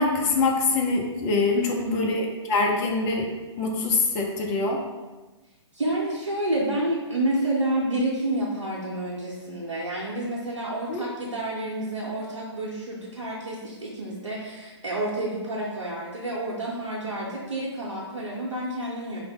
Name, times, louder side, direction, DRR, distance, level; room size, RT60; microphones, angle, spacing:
voice 1, 0.0-3.3 3.6-4.8 10.9-11.0, left 3 dB, 15° left, 0 dB, 0.3 m, -24 dB
voice 2, 1.5-2.0 5.7-19.2, right 1 dB, 85° right, -6 dB, 0.7 m, -29 dB
4.5 x 2.0 x 3.5 m, 1.2 s
figure-of-eight pair, 135°, 15 cm